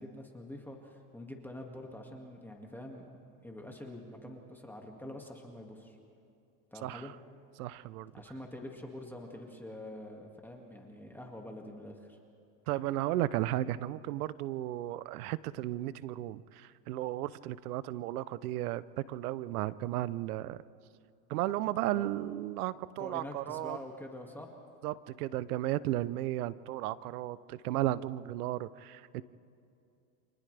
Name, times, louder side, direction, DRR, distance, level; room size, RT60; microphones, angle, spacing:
voice 1, 0.0-3.1 3.4-6.0 6.7-7.1 8.1-12.2 21.7-22.1 23.0-24.5, left 1 dB, 5° left, 0 dB, 2.1 m, -46 dB
voice 2, 7.6-8.1 12.7-20.6 21.3-23.8 24.8-29.2, right 14 dB, 85° right, 18 dB, 0.7 m, -34 dB
29.5 x 26.0 x 3.4 m, 2.7 s
supercardioid pair, 115°, 44 cm